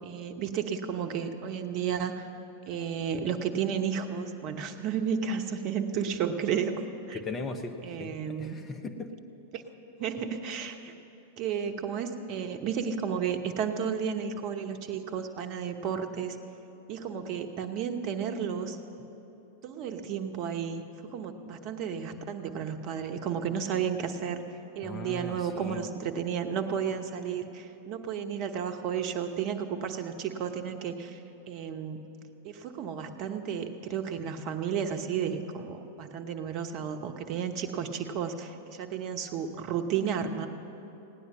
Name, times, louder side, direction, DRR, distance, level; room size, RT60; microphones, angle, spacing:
voice 1, 0.0-2.3 2.7-6.8 7.1-7.2 7.8-8.6 9.5-9.6 10.0-10.9 11.4-16.4 16.9-18.8 19.6-20.8 21.1-24.4 24.7-31.2 31.5-32.1 32.4-40.5, right 7 dB, 40° right, 6 dB, 1.0 m, -32 dB
voice 2, 7.1-9.1 24.8-25.8, left 3 dB, 20° left, 5 dB, 0.9 m, -38 dB
17.5 x 9.6 x 6.2 m, 3.0 s
figure-of-eight pair, 95°, 0 cm